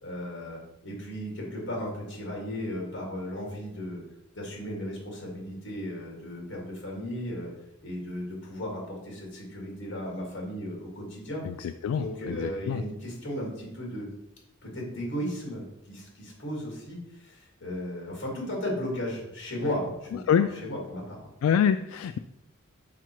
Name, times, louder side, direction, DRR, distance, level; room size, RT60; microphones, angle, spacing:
voice 1, 0.0-4.0 4.3-7.5 7.8-11.4 11.9-14.1 14.6-21.3, equal, 65° left, -2 dB, 2.5 m, -35 dB
voice 2, 11.6-12.8 20.3-20.5 21.4-22.2, left 8 dB, 85° left, 10 dB, 0.3 m, -25 dB
5.9 x 5.0 x 4.6 m, 0.86 s
head